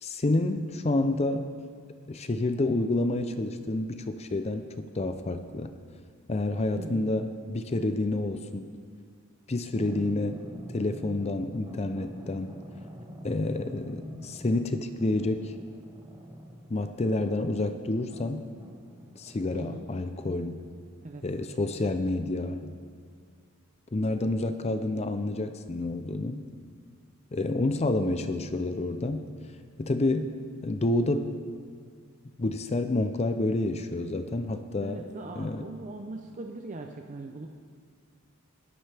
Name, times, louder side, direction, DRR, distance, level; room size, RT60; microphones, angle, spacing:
voice 1, 0.0-1.5 2.1-5.7 6.3-8.7 9.5-10.4 10.7-12.5 13.2-15.5 16.7-18.5 19.2-20.6 21.2-22.7 23.9-26.4 27.3-29.3 29.8-30.4 30.6-31.4 32.4-35.0 35.4-35.7, left 2 dB, 30° left, 9 dB, 0.5 m, -29 dB
voice 2, 6.7-7.1 19.5-19.9 21.0-21.2 34.8-37.5, right 2 dB, 35° right, 3 dB, 0.6 m, -40 dB
sound 1, 9.7-19.5, equal, 20° right, 1.1 m, -46 dB
18.5 x 12.0 x 3.4 m, 2.1 s
head